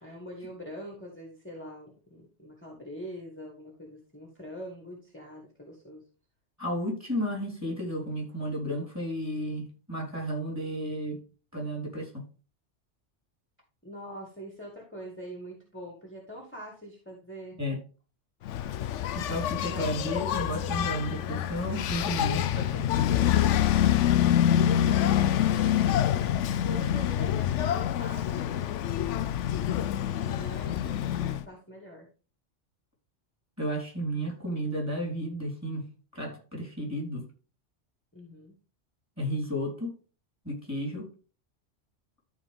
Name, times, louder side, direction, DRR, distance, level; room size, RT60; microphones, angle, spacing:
voice 1, 0.0-6.0 13.8-17.6 19.7-19.9 20.2-20.5 24.4-26.3 26.6-28.6 30.2-32.1 38.1-38.5, equal, 10° left, -1 dB, 2.4 m, -44 dB
voice 2, 6.6-11.2 11.5-12.2 17.6-17.8 19.1-22.9 23.1-23.2 33.6-35.8 36.1-37.2 39.2-39.9 40.4-41.1, equal, 10° right, 0 dB, 4.1 m, -33 dB
Engine, 18.5-31.4, left 10 dB, 75° left, 0.9 m, -26 dB
13.5 x 4.7 x 3.6 m, 0.35 s
omnidirectional pair, 1.3 m